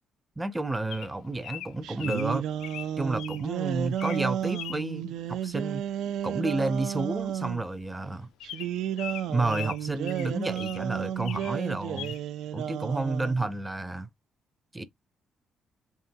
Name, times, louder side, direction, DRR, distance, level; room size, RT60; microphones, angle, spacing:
voice 1, 0.4-2.5 3.0-5.8 6.2-8.3 9.3-12.2 12.5-14.1 14.7-14.8, right 2 dB, 15° right, 0.5 m, -31 dB
Bird vocalization bird call bird song, 0.9-3.4 3.9-4.2 4.5-4.8 6.3-6.5 6.8-6.9 7.2-7.4 7.8-7.9 8.4-10.8 11.2-11.6 12.0-12.2, left 12 dB, 85° left, 0.4 m, -41 dB
sound 1, 1.8-7.6 8.4-13.5, right 10 dB, 85° right, 0.4 m, -32 dB
3.6 x 3.5 x 2.7 m
cardioid pair, 90°, 0 cm